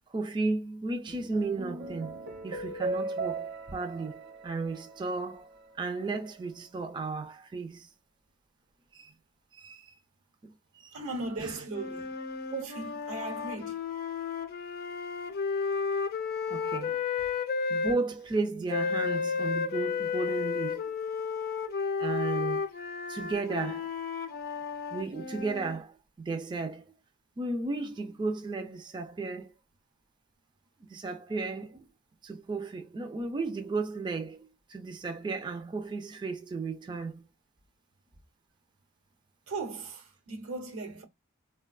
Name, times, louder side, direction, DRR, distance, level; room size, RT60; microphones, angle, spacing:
voice 1, 0.1-2.2 2.4-5.5 5.8-7.9 8.9-9.1 9.5-9.9 10.4-11.0 11.4-11.6 16.5-17.0 17.7-20.8 22.0-22.6 23.1-23.9 24.9-26.8 27.4-29.5 30.9-31.8 32.2-37.2, right 3 dB, 20° right, 0.3 m, -34 dB
sound 1, 1.1-5.6, right 3 dB, 55° right, 0.7 m, -38 dB
voice 2, 10.9-12.1 12.5-13.8 22.0-22.2 39.5-41.0, right 3 dB, 80° right, 1.0 m, -38 dB
sound 2, 11.7-18.0 18.7-25.8, left 5 dB, 50° left, 0.5 m, -32 dB
3.8 x 2.2 x 2.3 m
head